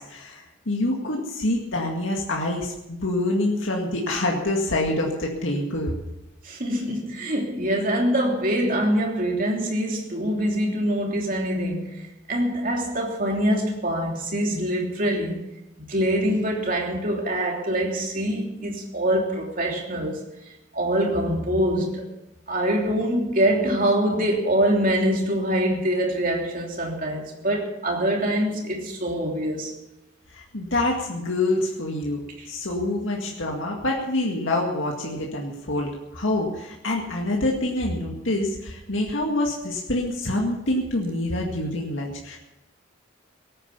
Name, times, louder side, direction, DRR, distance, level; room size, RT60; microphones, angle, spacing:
voice 1, 0.0-6.0 30.3-32.2 32.5-42.4, left 1 dB, 75° left, 2.1 m, -26 dB
voice 2, 6.4-15.4 15.9-20.2 20.7-22.1 22.5-29.8 32.4-32.5, right 1 dB, 45° right, 3.2 m, -24 dB
17.5 x 10.0 x 7.1 m
head